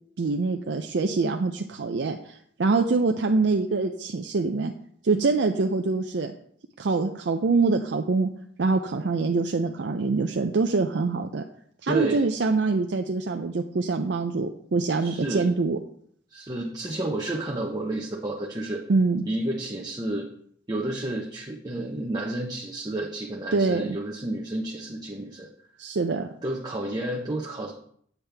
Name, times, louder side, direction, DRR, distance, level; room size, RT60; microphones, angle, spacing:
voice 1, 0.2-4.7 5.0-6.3 6.8-8.3 8.6-11.4 11.8-15.8 18.9-19.2 23.5-24.0 25.8-26.3, right 3 dB, 65° right, 4 dB, 0.5 m, -24 dB
voice 2, 11.9-12.2 15.0-15.5 16.3-18.8 19.2-20.3 20.7-25.5 26.4-27.7, right 1 dB, 25° right, 0 dB, 0.8 m, -30 dB
8.1 x 7.3 x 3.4 m, 0.64 s
head